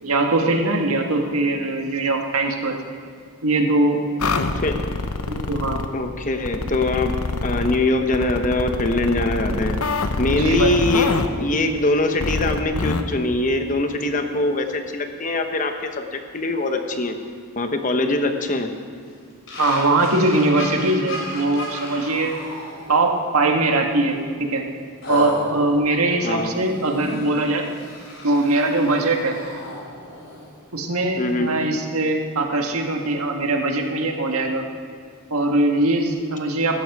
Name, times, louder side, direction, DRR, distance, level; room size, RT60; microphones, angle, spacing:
voice 1, 0.0-2.8 3.4-4.0 5.3-5.8 10.3-10.7 19.6-22.3 22.9-24.6 25.1-27.7 28.2-29.4 30.7-34.6 35.3-36.8, right 2 dB, 85° right, 3 dB, 1.6 m, -21 dB
sound 1, 4.2-5.9 6.5-7.8 8.1-11.3 12.2-13.0, left 3 dB, 90° left, 0.9 m, -25 dB
voice 2, 5.9-7.1 7.4-9.8 10.2-17.2 17.6-18.7 26.2-26.6 31.2-31.5, left 2 dB, 35° left, 6 dB, 1.0 m, -22 dB
sound 2, 19.5-23.3 23.8-24.0 25.0-30.6, left 1 dB, 60° left, 4.1 m, -34 dB
16.0 x 13.0 x 4.8 m, 2.2 s
head